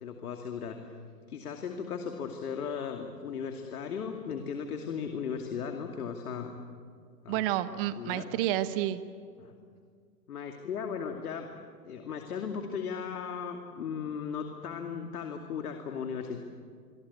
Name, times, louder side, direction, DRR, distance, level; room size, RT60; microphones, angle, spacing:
voice 1, 0.0-0.9 1.3-6.6 7.2-7.5 8.0-8.3 9.4-9.5 10.3-11.4 11.8-16.4, left 6 dB, 65° left, 4 dB, 2.5 m, -36 dB
voice 2, 7.3-9.0, right 13 dB, 35° right, 12 dB, 1.2 m, -30 dB
26.0 x 24.0 x 8.4 m, 2.1 s
hypercardioid pair, 125°, 48 cm